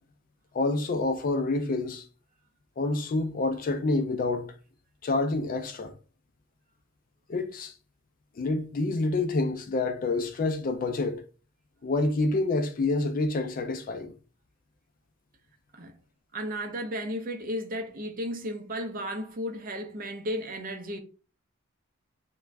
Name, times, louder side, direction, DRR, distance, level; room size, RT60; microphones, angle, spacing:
voice 1, 0.5-2.1 2.8-4.5 5.0-5.9 7.3-7.7 8.4-11.2 11.8-14.1, left 2 dB, 40° left, 0.4 m, -27 dB
voice 2, 16.3-21.0, equal, 40° right, 0.5 m, -34 dB
2.4 x 2.2 x 3.2 m
head